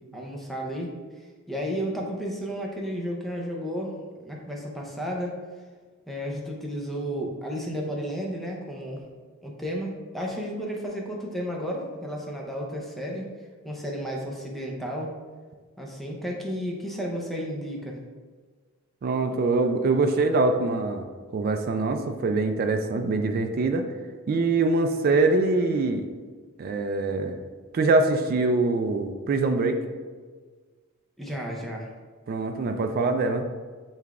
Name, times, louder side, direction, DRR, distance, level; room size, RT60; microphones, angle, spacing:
voice 1, 0.1-0.9 1.5-3.9 4.2-5.3 6.1-9.0 9.4-13.3 13.6-15.1 15.8-18.0 31.2-31.9, equal, ahead, -2 dB, 0.6 m, -32 dB
voice 2, 19.0-21.0 21.3-23.9 24.3-26.1 26.6-27.4 27.7-29.8 32.3-33.4, right 3 dB, 45° right, 6 dB, 0.3 m, -24 dB
6.5 x 3.4 x 2.4 m, 1.5 s
head